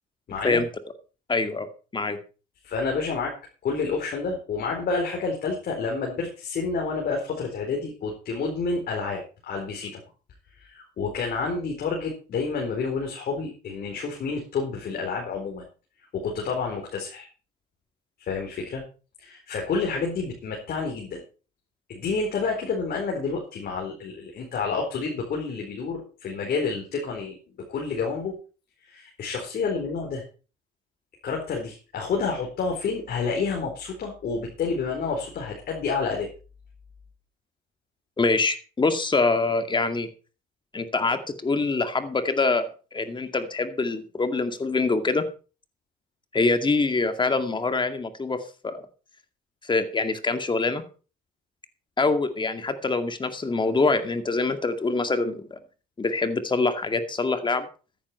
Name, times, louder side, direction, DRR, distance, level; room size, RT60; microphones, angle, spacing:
voice 1, 0.3-0.6 2.6-3.3 3.6-10.0 10.6-15.6 16.1-17.3 18.2-18.8 19.2-21.2 21.9-28.3 28.8-30.2 31.2-36.3, left 4 dB, 55° left, 0 dB, 4.3 m, -29 dB
voice 2, 1.3-1.7 1.9-2.2 38.2-40.1 40.7-45.3 46.3-48.8 49.6-50.8 52.0-55.6 56.0-57.7, left 3 dB, 25° left, 9 dB, 2.2 m, -25 dB
13.5 x 10.5 x 4.5 m, 0.36 s
supercardioid pair, 80°, 19 cm